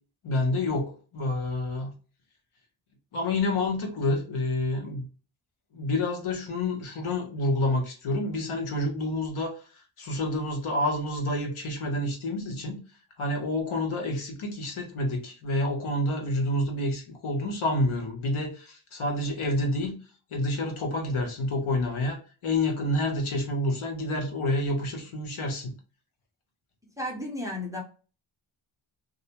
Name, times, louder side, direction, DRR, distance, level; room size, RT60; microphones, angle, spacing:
voice 1, 0.2-1.9 3.1-5.0 5.7-9.6 10.0-12.8 13.2-19.9 20.3-25.7, left 1 dB, 80° left, 0.9 m, -28 dB
voice 2, 27.0-27.8, left 1 dB, 5° right, 0.6 m, -33 dB
2.5 x 2.1 x 2.8 m
wide cardioid pair, 140°, 49 cm